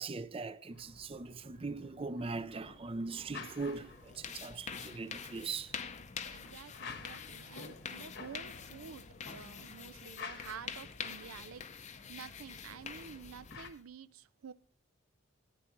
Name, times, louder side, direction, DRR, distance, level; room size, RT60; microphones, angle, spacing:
voice 1, 0.0-5.7, right 4 dB, 25° right, 0.5 m, -40 dB
sound 1, 0.7-13.7, left 4 dB, 55° left, 1.2 m, -52 dB
sound 2, 3.6-13.8, left 6 dB, 35° left, 0.6 m, -46 dB
voice 2, 6.3-14.5, right 7 dB, 90° right, 0.5 m, -50 dB
14.5 x 9.2 x 3.0 m
head